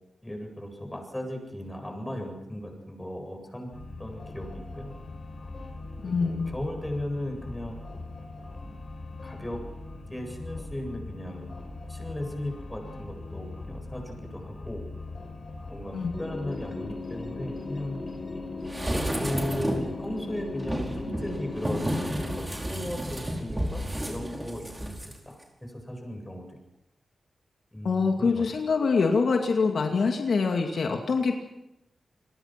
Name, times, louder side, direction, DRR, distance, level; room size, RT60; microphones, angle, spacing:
voice 1, 0.2-3.7 4.0-4.9 6.1-7.8 9.2-9.6 10.1-11.4 11.9-14.8 15.7-18.0 19.0-24.9 25.3-26.6 27.7-28.5, left 1 dB, 10° left, 3 dB, 8.0 m, -36 dB
sound 1, 3.7-22.4, left 3 dB, 40° left, 5.5 m, -39 dB
voice 2, 6.0-6.5 15.9-16.1 27.8-31.4, left 4 dB, 70° left, 3 dB, 2.4 m, -25 dB
sound 2, 18.7-20.0 20.6-25.1 25.4-25.5, right 1 dB, 15° right, 5.2 m, -31 dB
29.0 x 21.5 x 6.1 m, 0.87 s
wide cardioid pair, 95°, 0 cm